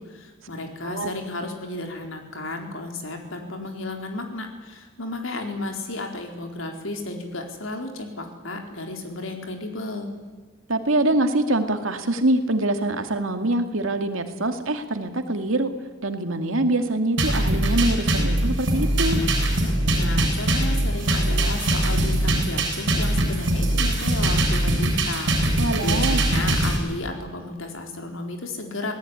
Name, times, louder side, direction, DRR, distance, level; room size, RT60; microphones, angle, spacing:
voice 1, 0.0-10.1 19.9-28.9, left 2 dB, 85° left, 3 dB, 4.3 m, -33 dB
voice 2, 10.7-15.7 16.0-19.2 25.6-26.2, right 1 dB, 85° right, 7 dB, 2.3 m, -24 dB
sound 1, 17.2-26.8, right 1 dB, 60° right, 7.4 m, -22 dB
26.5 x 18.0 x 9.8 m, 1.4 s
head